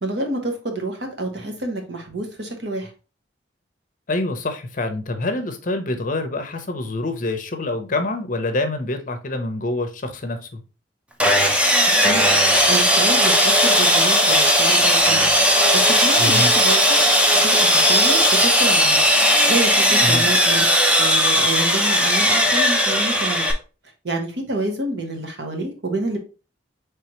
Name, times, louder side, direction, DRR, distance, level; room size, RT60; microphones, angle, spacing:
voice 1, 0.0-2.9 12.0-12.3 12.7-15.3 15.7-17.0 17.3-19.0 19.4-20.7 20.9-23.5 24.0-26.2, right 2 dB, 70° right, 3 dB, 1.1 m, -28 dB
voice 2, 4.1-10.6 16.2-16.5 20.0-20.2, left 2 dB, 45° left, 6 dB, 0.7 m, -26 dB
Sawing, 11.2-23.5, equal, 5° right, 0.6 m, -17 dB
4.6 x 3.4 x 3.0 m, 0.33 s
head